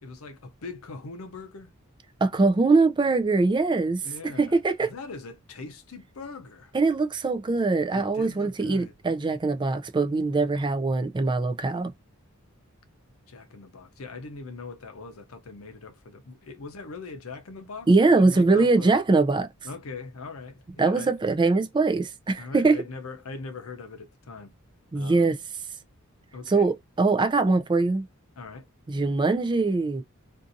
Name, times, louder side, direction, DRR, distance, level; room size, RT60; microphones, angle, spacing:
voice 1, 0.0-1.7 4.0-6.7 7.9-8.9 13.3-19.0 19.6-21.1 22.4-24.5 24.9-25.4 26.3-26.7 28.4-28.7, left 3 dB, 70° left, 0.6 m, -41 dB
voice 2, 2.2-4.0 4.4-4.9 6.7-11.9 17.9-19.5 20.8-22.8 24.9-25.4 26.5-28.0 28.9-30.0, right 3 dB, 20° right, 0.4 m, -22 dB
2.6 x 2.5 x 2.5 m
head